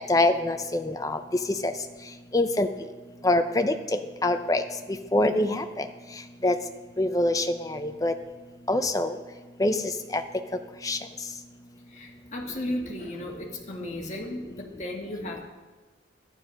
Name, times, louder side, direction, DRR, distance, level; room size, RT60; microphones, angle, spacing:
voice 1, 0.1-1.2 1.6-1.7 2.3-2.7 3.2-4.6 5.1-5.8 6.4-6.6 7.0-8.1 8.7-9.1 9.6-9.8 10.1-10.2 10.8-11.0, left 2 dB, 20° left, 8 dB, 0.7 m, -24 dB
voice 2, 11.9-15.5, left 1 dB, 40° left, 0 dB, 1.7 m, -35 dB
12.0 x 9.9 x 5.3 m, 1.3 s
head